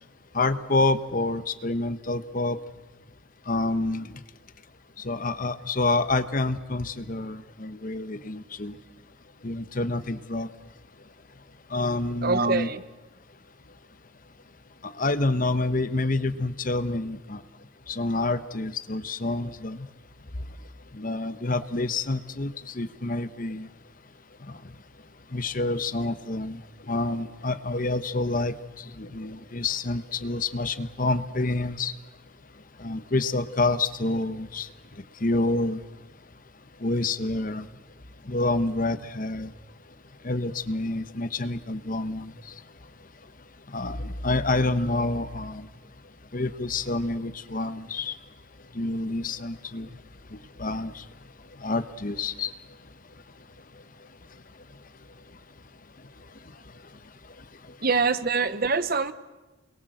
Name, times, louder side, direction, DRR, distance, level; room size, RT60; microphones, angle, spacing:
voice 1, 0.3-2.6 3.5-4.1 5.0-8.7 9.4-10.5 11.7-12.7 14.8-17.4 17.9-19.9 20.9-23.7 25.3-26.6 26.9-31.9 32.8-34.7 35.2-35.8 36.8-37.7 38.3-39.5 40.2-42.3 43.7-45.7 46.3-48.2 48.7-49.9 50.6-51.0 51.6-52.5, left 2 dB, 40° left, 12 dB, 1.0 m, -28 dB
voice 2, 12.2-12.8 57.8-59.1, right 4 dB, 45° right, 13 dB, 1.0 m, -24 dB
29.0 x 22.5 x 7.9 m, 1.1 s
head